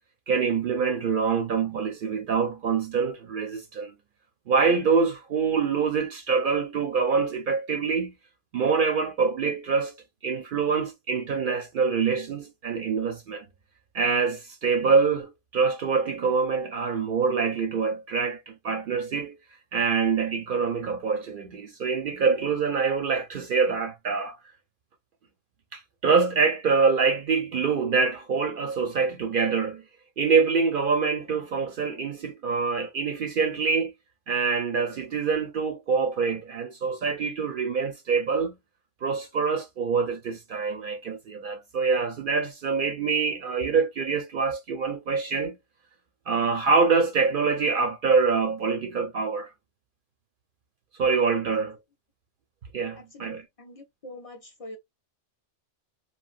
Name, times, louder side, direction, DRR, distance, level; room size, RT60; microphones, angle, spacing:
voice 1, 0.3-3.9 4.5-8.1 8.5-10.0 10.2-13.4 13.9-19.4 19.7-24.4 25.7-29.8 30.2-33.9 34.3-38.6 39.0-45.6 46.3-49.5 51.0-51.8 52.7-53.4, right 5 dB, 60° right, 0.6 m, -25 dB
voice 2, 53.0-54.8, left 1 dB, 55° left, 0.4 m, -44 dB
3.0 x 2.2 x 2.3 m
omnidirectional pair, 1.2 m